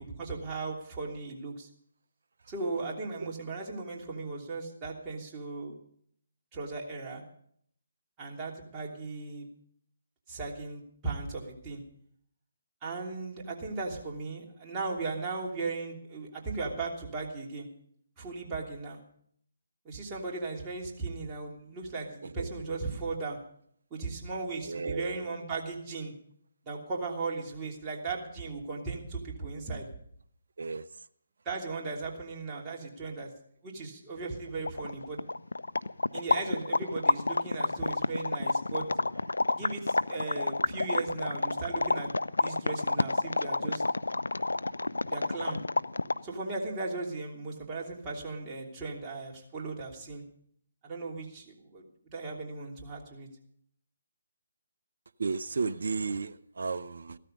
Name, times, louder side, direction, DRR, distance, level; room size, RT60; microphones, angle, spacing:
voice 1, 0.0-1.7 2.5-5.7 6.5-7.2 8.2-9.5 10.3-11.8 12.8-17.7 18.2-19.0 19.8-23.4 23.9-26.1 26.6-29.9 31.4-33.3 33.6-35.2 36.1-38.9 39.5-42.1 42.4-43.8 45.1-45.6 46.2-50.2 50.8-53.3, right 3 dB, 20° right, -2 dB, 3.0 m, -37 dB
voice 2, 24.7-25.1 30.6-30.8 55.2-57.2, right 4 dB, 65° right, 11 dB, 0.6 m, -33 dB
sound 1, 34.3-34.4 34.6-46.3, left 2 dB, 80° left, 0.5 m, -29 dB
15.0 x 13.0 x 5.3 m, 0.66 s
figure-of-eight pair, 145°, 0 cm